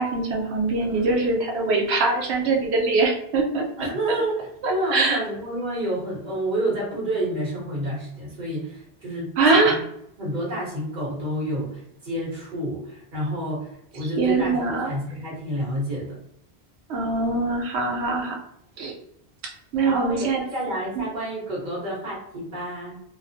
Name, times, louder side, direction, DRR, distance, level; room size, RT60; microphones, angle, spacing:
voice 1, 0.0-3.6 4.6-5.2 9.4-9.8 14.2-14.9 16.9-18.4 18.8-18.9 19.7-20.4 21.0-21.1, right 3 dB, 85° right, 1 dB, 0.9 m, -22 dB
voice 2, 3.8-9.8 10.2-16.2 19.9-23.0, right 1 dB, 45° right, -5 dB, 1.2 m, -29 dB
2.5 x 2.1 x 2.6 m, 0.76 s
omnidirectional pair, 1.1 m